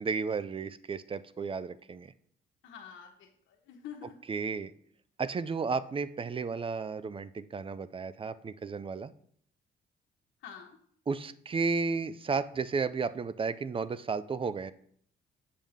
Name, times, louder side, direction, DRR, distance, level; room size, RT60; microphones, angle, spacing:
voice 1, 0.0-2.1 4.3-4.7 5.2-9.1 11.1-14.7, right 4 dB, 25° right, 15 dB, 0.4 m, -33 dB
voice 2, 2.6-4.1 10.4-10.8, left 8 dB, 75° left, 0 dB, 1.1 m, -47 dB
7.4 x 6.7 x 3.6 m, 0.63 s
cardioid pair, 90°, 20 cm